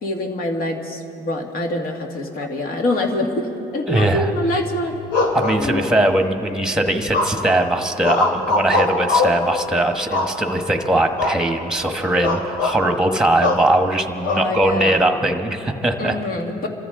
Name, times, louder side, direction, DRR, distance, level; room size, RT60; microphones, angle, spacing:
voice 1, 0.0-5.0 5.6-5.9 14.2-15.0 16.0-16.7, left 1 dB, 60° left, 3 dB, 2.0 m, -25 dB
voice 2, 3.9-4.3 5.3-16.1, right 1 dB, 5° right, 6 dB, 1.2 m, -20 dB
sound 1, 5.1-6.1 7.1-7.6 8.0-9.5 10.1-10.7 11.2-11.4 11.7-11.9 12.2-12.8 13.4-13.7 14.3-15.0, left 2 dB, 90° left, 2.3 m, -21 dB
26.5 x 14.0 x 3.8 m, 3.0 s
cardioid pair, 110°, 17 cm